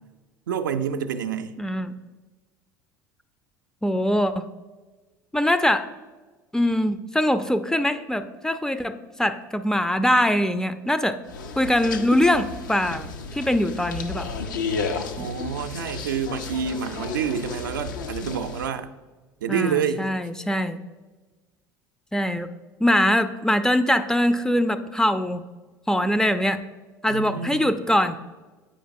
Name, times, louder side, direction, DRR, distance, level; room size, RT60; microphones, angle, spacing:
voice 1, 0.5-1.6 15.2-18.9 19.4-20.1 27.1-27.7, right 7 dB, 80° right, 7 dB, 0.4 m, -28 dB
voice 2, 1.6-1.9 3.8-4.5 5.3-5.9 6.5-11.2 11.6-14.3 15.2-15.3 19.5-20.8 22.1-22.5 22.8-25.4 25.9-26.6 27.0-28.2, left 1 dB, 5° left, 10 dB, 0.3 m, -22 dB
sound 1, 11.3-18.7, left 4 dB, 75° left, 0.5 m, -33 dB
8.5 x 5.0 x 2.6 m, 1.3 s
figure-of-eight pair, 70°, 10 cm